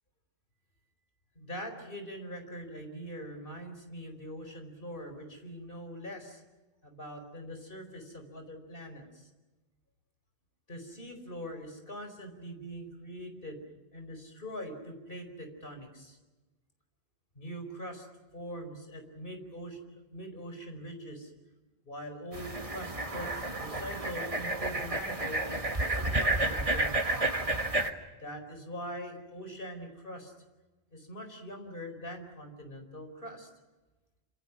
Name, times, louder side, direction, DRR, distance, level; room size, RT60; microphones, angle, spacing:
voice 1, 1.3-6.4 6.8-9.3 10.7-13.6 13.9-16.2 17.3-18.1 18.3-21.3 21.9-25.6 25.9-27.2 28.2-30.3 30.9-33.5, equal, 60° left, 6 dB, 5.0 m, -43 dB
sound 1, 22.3-27.9, right 2 dB, 35° right, 1.8 m, -31 dB
28.0 x 27.0 x 6.2 m, 1.1 s
omnidirectional pair, 1.0 m